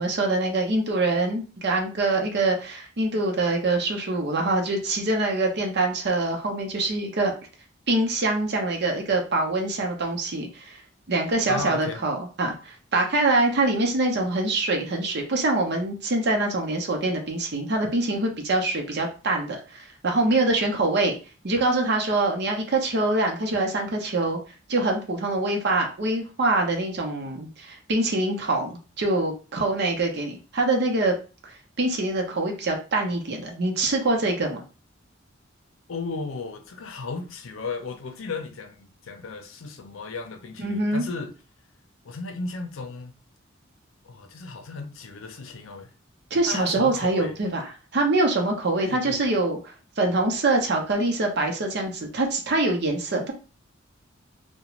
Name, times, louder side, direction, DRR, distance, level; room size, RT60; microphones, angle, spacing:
voice 1, 0.0-7.3 7.9-10.8 11.1-21.2 21.4-24.4 24.7-31.1 31.4-34.6 40.6-41.0 46.3-47.6 47.9-53.3, right 2 dB, 55° right, 0.7 m, -24 dB
voice 2, 11.5-12.0 35.9-41.3 42.0-43.1 44.0-45.9 46.4-47.3 48.7-49.2, left 3 dB, 85° left, 0.5 m, -35 dB
2.4 x 2.2 x 2.9 m
head